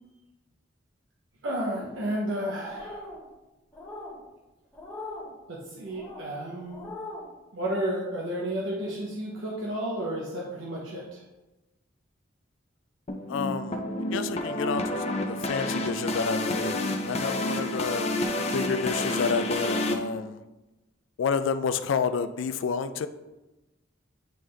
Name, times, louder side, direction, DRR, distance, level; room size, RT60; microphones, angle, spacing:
voice 1, 1.4-3.1 5.5-6.9 7.5-11.2, right 1 dB, 80° right, -3 dB, 0.9 m, -32 dB
sound 1, 2.7-3.2 3.7-4.2 4.7-5.3 5.9-6.2 6.7-7.2, left 2 dB, 10° left, 1.7 m, -40 dB
sound 2, 13.1-19.9, left 1 dB, 35° left, 0.6 m, -29 dB
voice 2, 13.3-13.8 14.1-20.4 21.2-23.1, left 5 dB, 75° left, 11 dB, 0.3 m, -30 dB
9.1 x 3.6 x 3.3 m, 1.0 s
head